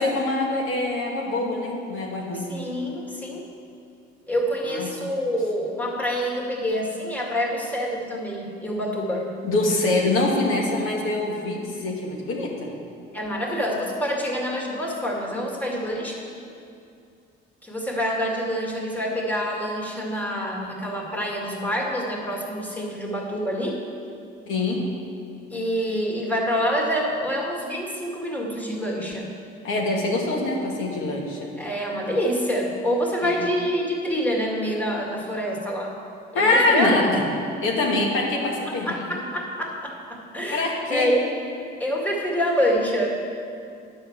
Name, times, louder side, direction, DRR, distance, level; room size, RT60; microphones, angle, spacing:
voice 1, 0.0-2.5 4.6-4.9 9.4-12.7 24.5-24.9 29.6-31.5 33.2-33.3 36.3-37.2 37.6-39.1 40.5-41.1, left 2 dB, 75° left, -1 dB, 2.1 m, -24 dB
voice 2, 2.5-3.4 4.3-9.3 13.1-16.3 17.6-23.8 25.5-29.4 31.6-36.0 36.3-37.1 38.9-41.2 41.8-43.1, equal, 10° left, -3 dB, 2.2 m, -26 dB
10.5 x 6.1 x 7.3 m, 2.5 s
cardioid pair, 100°, 21 cm